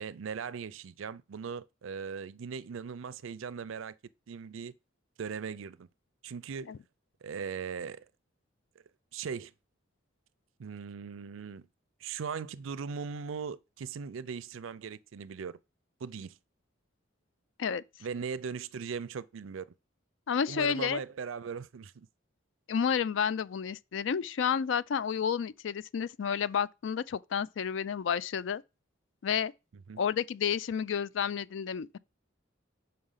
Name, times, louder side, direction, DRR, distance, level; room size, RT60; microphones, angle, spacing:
voice 1, 0.0-4.0 4.3-4.7 5.2-5.9 6.2-6.8 7.2-8.1 9.1-9.5 10.6-11.7 12.0-15.6 16.0-16.4 18.0-19.7 20.5-22.1 29.9-30.0, right 6 dB, 75° right, 0.4 m, -39 dB
voice 2, 20.3-21.0 22.7-28.6 29.2-29.5 30.0-32.0, left 7 dB, 65° left, 0.4 m, -30 dB
5.7 x 4.9 x 5.6 m
head